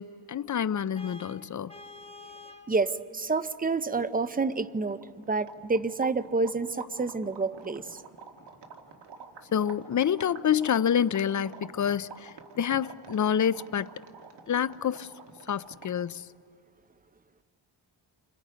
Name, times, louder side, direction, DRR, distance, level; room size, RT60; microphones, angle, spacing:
voice 1, 0.0-1.7 9.5-13.9 14.5-15.1 15.5-16.3, left 8 dB, 40° left, 0.5 m, -27 dB
Vehicle horn car horn honking, 0.9-2.7, left 3 dB, 10° left, 2.0 m, -47 dB
voice 2, 2.7-5.0 5.3-8.0, right 3 dB, 20° right, 0.7 m, -28 dB
sound 1, 4.3-16.1, right 5 dB, 60° right, 2.0 m, -48 dB
29.5 x 26.5 x 5.1 m
wide cardioid pair, 115°, 48 cm